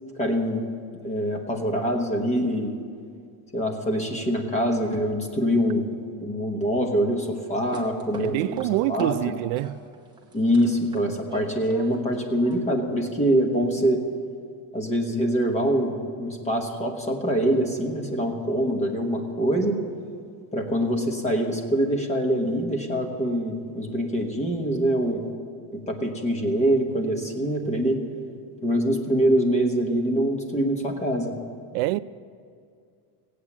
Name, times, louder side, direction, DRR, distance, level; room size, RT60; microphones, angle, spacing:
voice 1, 0.2-0.6 1.0-2.8 3.5-5.9 6.2-8.6 8.9-9.4 10.3-14.0 14.7-19.8 20.5-25.2 25.7-28.0 28.6-31.3, equal, 15° left, 1.2 m, -24 dB
sound 1, 7.4-9.1 9.6-12.6, right 5 dB, 10° right, 0.9 m, -44 dB
voice 2, 8.2-9.8 31.7-32.0, right 16 dB, 85° right, 0.5 m, -25 dB
16.5 x 8.4 x 7.3 m
cardioid pair, 175°, 49 cm